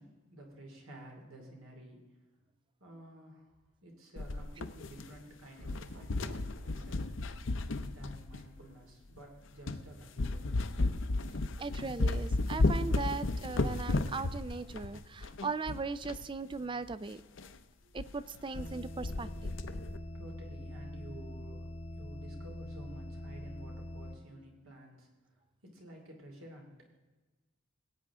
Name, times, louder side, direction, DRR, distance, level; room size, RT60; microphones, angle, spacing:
voice 1, 0.0-2.0 2.8-7.0 7.9-10.4 17.8-17.9 20.1-21.7 21.9-26.7, right 1 dB, 75° right, 1 dB, 2.8 m, -52 dB
sound 1, 4.2-5.3 5.6-8.6 9.2-9.3 9.7-9.9 10.2-16.2 16.5-16.6 16.9-17.0 17.4-17.6 18.0-18.1 18.4-18.7 19.0-20.0, left 2 dB, 65° left, 0.6 m, -33 dB
sound 2, 5.6-6.3 6.9-7.8, equal, 55° right, 1.3 m, -54 dB
voice 2, 11.6-17.2 17.9-19.5, right 4 dB, 25° right, 15 dB, 0.3 m, -38 dB
sound 3, 18.5-24.2, left 1 dB, 30° left, 0.9 m, -44 dB
17.5 x 9.0 x 3.7 m, 1.2 s
head